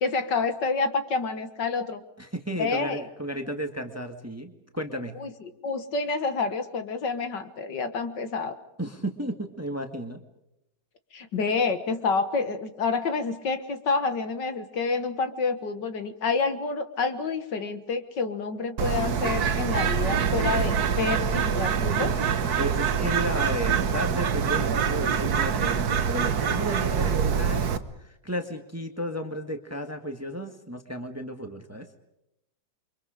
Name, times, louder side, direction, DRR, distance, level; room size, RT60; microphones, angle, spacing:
voice 1, 0.0-2.0 2.6-3.1 5.2-5.3 5.6-8.6 11.1-22.2, left 4 dB, 65° left, 9 dB, 2.1 m, -28 dB
voice 2, 2.2-5.1 8.8-10.2 22.6-27.7 28.0-31.9, equal, 10° right, 6 dB, 1.6 m, -33 dB
Bird, 18.8-27.8, right 7 dB, 55° right, 1.5 m, -25 dB
29.0 x 25.0 x 5.1 m, 0.86 s
omnidirectional pair, 2.1 m